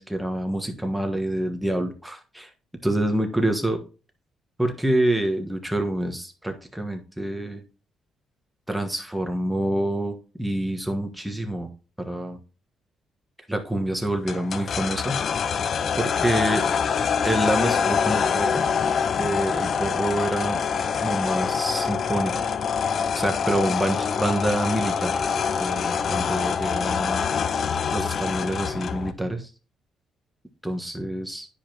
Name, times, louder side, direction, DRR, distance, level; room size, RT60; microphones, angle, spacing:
voice 1, 0.0-2.5 2.8-3.8 4.6-7.6 8.7-11.7 12.0-12.4 13.5-15.6 16.0-16.7 17.2-18.6 19.2-20.7 21.0-22.4 22.8-22.9 23.2-25.2 25.6-27.3 27.9-29.5 30.6-31.5, right 1 dB, 5° right, 5 dB, 1.3 m, -27 dB
sound 1, 14.3-29.1, left 6 dB, 55° left, 0.5 m, -25 dB
9.9 x 5.0 x 2.9 m, 0.34 s
cardioid pair, 90°, 0 cm